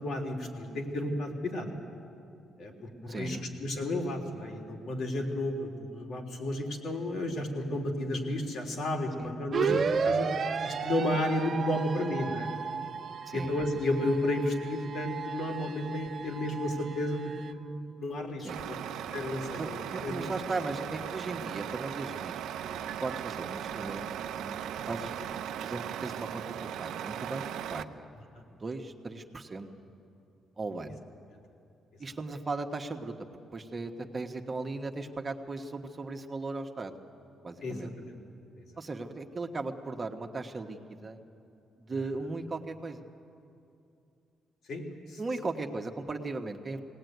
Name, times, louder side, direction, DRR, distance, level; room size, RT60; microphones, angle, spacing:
voice 1, 0.0-1.8 2.6-10.3 10.6-12.5 13.3-18.8 19.1-20.1 37.6-38.1 38.6-38.7 44.7-44.8 45.1-45.2, left 1 dB, 70° left, 1 dB, 3.4 m, -32 dB
voice 2, 3.1-3.5 9.2-9.3 9.7-9.9 13.3-13.5 18.4-18.6 19.6-24.1 24.4-25.2 25.6-27.4 27.7-28.1 28.6-29.7 30.6-31.0 32.0-33.1 33.5-36.9 37.4-37.9 38.8-41.2 41.8-43.1 45.2-46.8, right 3 dB, 30° right, 4 dB, 1.4 m, -37 dB
sound 1, 9.5-17.5, right 5 dB, 50° right, 1.2 m, -34 dB
Truck, 18.5-27.8, right 10 dB, 85° right, 0.7 m, -38 dB
20.5 x 18.0 x 9.4 m, 2.6 s
cardioid pair, 90°, 0 cm